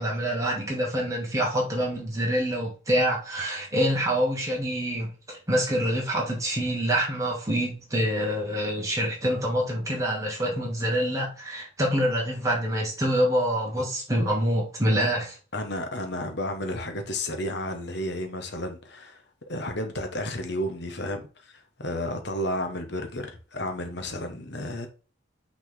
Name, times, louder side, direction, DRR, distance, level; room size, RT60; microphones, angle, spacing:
voice 1, 0.0-15.4, equal, 15° right, 2.4 m, -26 dB
voice 2, 15.5-24.9, left 1 dB, 55° left, 1.2 m, -32 dB
6.2 x 4.0 x 3.8 m
head